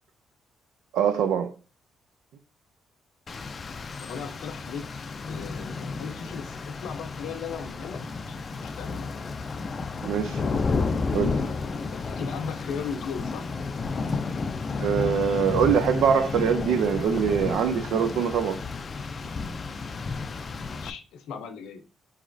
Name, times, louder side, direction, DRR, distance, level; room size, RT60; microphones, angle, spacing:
voice 1, 0.9-1.5 10.0-10.4 11.1-11.4 14.8-18.6, right 7 dB, 85° right, 0.5 m, -23 dB
Rain, 3.3-20.9, left 4 dB, 40° left, 0.4 m, -32 dB
voice 2, 4.0-4.8 5.3-9.3 11.9-13.4 20.7-21.8, left 6 dB, 85° left, 0.6 m, -37 dB
4.0 x 3.0 x 2.6 m
cardioid pair, 90°, 0 cm